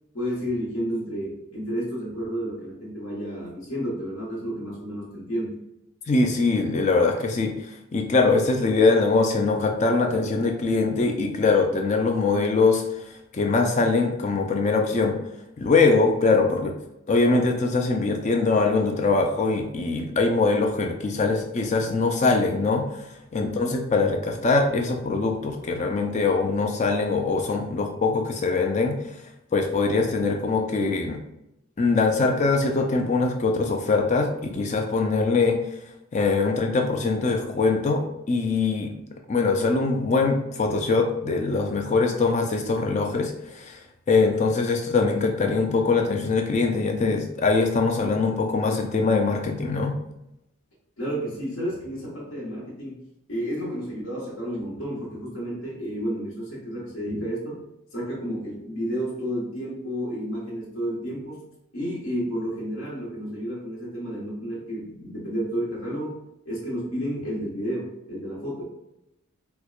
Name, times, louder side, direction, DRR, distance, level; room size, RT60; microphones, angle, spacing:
voice 1, 0.1-5.6 23.4-23.8 51.0-53.0 53.3-57.6 57.9-61.4 61.7-68.6, equal, 65° left, -6 dB, 1.2 m, -31 dB
voice 2, 6.1-7.5 7.9-13.0 13.3-15.2 15.6-16.7 17.1-23.1 23.3-29.0 29.5-31.2 31.8-35.6 36.1-38.9 39.3-43.8 44.1-50.0, left 3 dB, 30° left, 4 dB, 0.4 m, -22 dB
4.4 x 2.1 x 2.4 m, 0.86 s
head